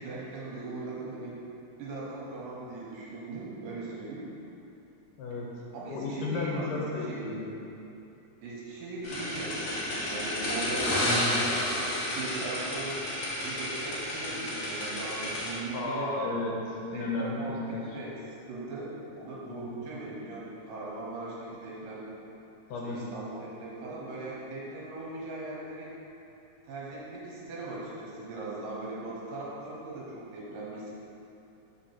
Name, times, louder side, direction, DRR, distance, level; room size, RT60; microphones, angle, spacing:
voice 1, 0.0-1.3 1.8-4.3 5.7-7.2 8.4-13.0 13.4-16.1 16.9-17.6 17.8-18.1 18.5-22.1 22.8-25.9 26.6-30.9, right 2 dB, 75° right, -6 dB, 2.6 m, -39 dB
voice 2, 5.2-5.5 5.9-7.5 11.1-11.4 15.7-17.9 19.5-19.8 22.7-23.0, left 2 dB, 80° left, -3 dB, 2.3 m, -33 dB
sound 1, 9.0-15.5, left 1 dB, 60° left, 2.1 m, -31 dB
5.4 x 3.7 x 5.7 m, 2.7 s
omnidirectional pair, 4.1 m